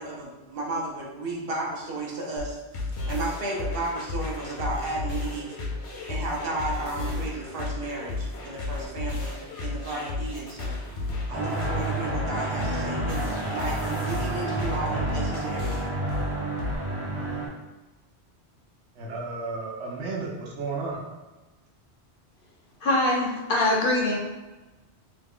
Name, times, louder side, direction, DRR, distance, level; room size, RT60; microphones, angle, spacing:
voice 1, 0.0-5.6 6.1-10.8 11.3-15.9, right 2 dB, 60° right, -2 dB, 0.8 m, -33 dB
sound 1, 2.4-16.8, left 3 dB, 80° left, 1.0 m, -33 dB
sound 2, 11.3-17.5, right 2 dB, 20° right, 0.4 m, -30 dB
voice 2, 18.9-21.0, right 3 dB, 85° right, -2 dB, 1.0 m, -33 dB
voice 3, 22.8-24.2, left 1 dB, 60° left, -1 dB, 0.7 m, -23 dB
3.0 x 2.3 x 3.6 m, 1.1 s
omnidirectional pair, 1.2 m